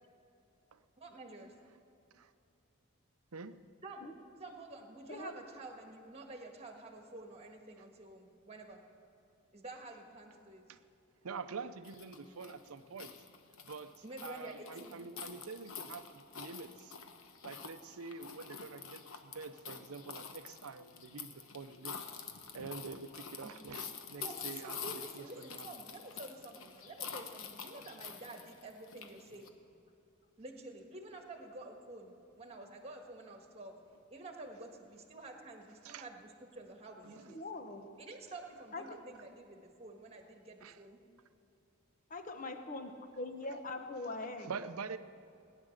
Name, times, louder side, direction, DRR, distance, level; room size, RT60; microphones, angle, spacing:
voice 1, 1.0-1.5 3.8-4.1 4.4-8.8 9.5-10.6 14.0-15.0 23.4-23.5 24.2-29.6 30.4-33.8 34.1-37.4 38.0-41.0, right 2 dB, 30° right, 3 dB, 1.6 m, -49 dB
voice 2, 5.1-5.4 37.3-37.9 38.7-38.8 42.1-44.5, left 2 dB, 35° left, 6 dB, 1.0 m, -42 dB
voice 3, 11.2-13.1 13.6-13.9 14.2-17.0 17.4-22.0 22.5-25.7 35.8-36.1 37.0-37.3 40.6-40.8 44.4-45.0, right 4 dB, 85° right, 11 dB, 0.6 m, -46 dB
sound 1, 11.8-29.5, left 6 dB, 70° left, 1.0 m, -47 dB
18.5 x 10.0 x 6.5 m, 2.6 s
head